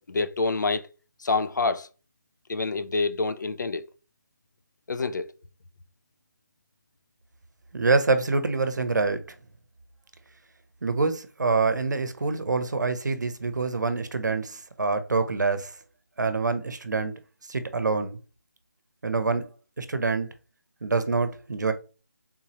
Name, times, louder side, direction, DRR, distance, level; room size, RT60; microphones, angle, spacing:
voice 1, 0.1-0.9 1.2-1.9 2.5-3.9 4.9-5.3, left 3 dB, 85° left, 0.5 m, -27 dB
voice 2, 7.7-9.2 10.8-15.7 16.2-17.1 17.5-18.2 19.0-19.4 19.8-20.3 20.8-21.7, right 3 dB, 80° right, 0.7 m, -26 dB
3.7 x 2.9 x 3.0 m
figure-of-eight pair, 175°, 10 cm